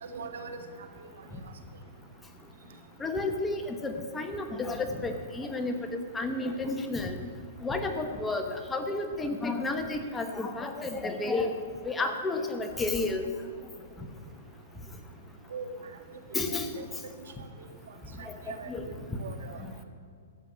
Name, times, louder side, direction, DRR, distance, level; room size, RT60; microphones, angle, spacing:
voice 1, 0.0-0.6 15.5-15.7 16.8-16.9 18.2-18.9 19.2-19.8, right 5 dB, 75° right, 6 dB, 1.8 m, -41 dB
voice 2, 3.0-5.8 6.1-7.2 7.6-13.3 16.3-16.7 18.3-18.8, left 2 dB, 10° left, 5 dB, 1.1 m, -31 dB
13.5 x 7.9 x 8.8 m, 2.2 s
hypercardioid pair, 150°, 0 cm